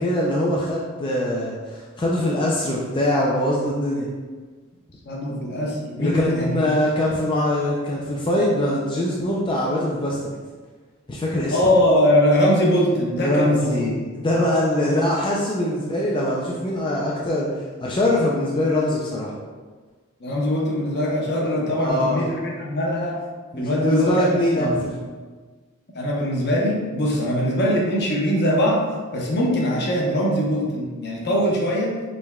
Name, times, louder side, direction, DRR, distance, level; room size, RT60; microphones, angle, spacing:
voice 1, 0.0-4.1 6.0-10.3 11.1-11.6 13.2-19.4 21.7-22.3 23.5-24.9, left 1 dB, 20° left, -4 dB, 0.4 m, -23 dB
voice 2, 5.1-6.8 11.5-13.9 14.8-15.0 20.2-23.2 23.6-25.0 25.9-28.8 29.1-32.0, equal, 50° left, -2 dB, 0.8 m, -22 dB
5.1 x 3.5 x 2.2 m, 1.4 s
head